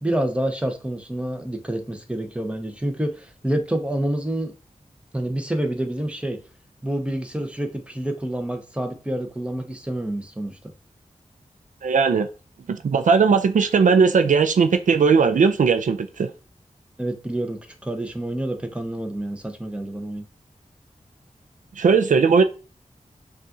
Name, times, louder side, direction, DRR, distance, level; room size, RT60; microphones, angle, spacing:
voice 1, 0.0-4.5 5.1-6.4 6.8-10.6 17.0-20.2, right 1 dB, 10° right, 0.8 m, -28 dB
voice 2, 11.8-12.3 12.7-16.3 21.8-22.4, right 5 dB, 75° right, 0.4 m, -18 dB
5.4 x 2.4 x 2.6 m
wide cardioid pair, 65°, 13 cm